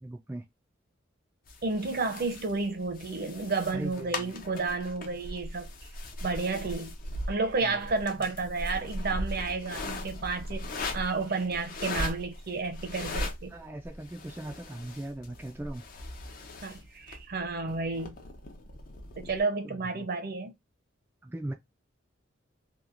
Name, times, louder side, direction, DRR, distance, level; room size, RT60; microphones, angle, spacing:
voice 1, 0.0-0.4 3.7-4.3 7.6-7.8 8.2-8.3 13.5-15.8 19.6-20.1 21.2-21.5, right 1 dB, 10° right, 0.3 m, -39 dB
sound 1, 1.5-19.4, left 1 dB, 45° left, 0.6 m, -39 dB
voice 2, 1.6-5.7 6.2-6.9 7.3-13.5 16.6-18.2 19.2-20.5, right 3 dB, 55° right, 0.6 m, -31 dB
2.9 x 2.3 x 2.4 m
head